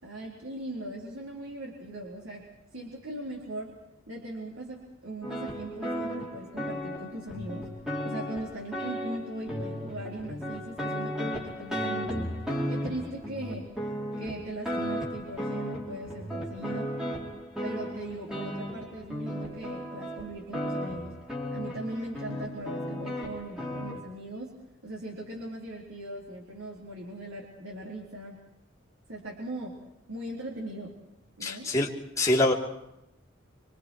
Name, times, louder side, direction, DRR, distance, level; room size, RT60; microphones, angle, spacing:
voice 1, 0.0-2.5 2.7-3.8 4.1-7.7 8.0-12.3 12.7-13.7 14.2-17.0 17.6-21.1 21.5-24.5 24.8-28.4 29.1-29.8 30.1-30.9 31.4-31.7, right 1 dB, 85° right, -3 dB, 4.1 m, -39 dB
sound 1, 5.2-24.0, equal, 5° right, 4.3 m, -35 dB
voice 2, 31.4-31.9 32.2-32.5, left 1 dB, 15° left, -4 dB, 3.0 m, -24 dB
26.5 x 25.5 x 4.7 m, 0.86 s
head